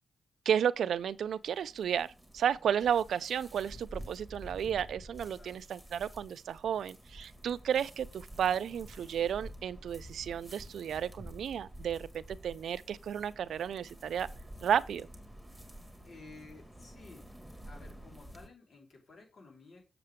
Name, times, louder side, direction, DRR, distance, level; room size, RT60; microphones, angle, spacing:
voice 1, 0.5-2.1 2.3-14.3 14.6-15.1, right 8 dB, 85° right, 0.4 m, -32 dB
sound 1, 0.7-18.5, right 1 dB, 5° right, 1.9 m, -50 dB
voice 2, 16.0-17.3 17.6-19.9, left 3 dB, 60° left, 4.2 m, -54 dB
7.5 x 6.8 x 3.6 m
cardioid pair, 75°, 0 cm